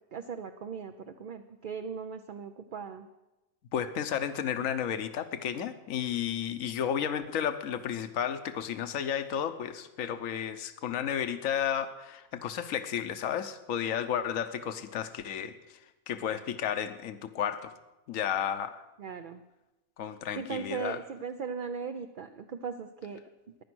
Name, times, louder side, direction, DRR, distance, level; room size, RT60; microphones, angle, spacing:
voice 1, 0.1-3.1 19.0-19.4 20.4-23.2, right 6 dB, 50° right, 6 dB, 0.6 m, -38 dB
voice 2, 3.7-15.8 16.1-17.7 18.1-18.8 20.0-21.0, left 9 dB, 70° left, 10 dB, 1.2 m, -32 dB
15.5 x 10.5 x 6.2 m, 1.0 s
omnidirectional pair, 1.5 m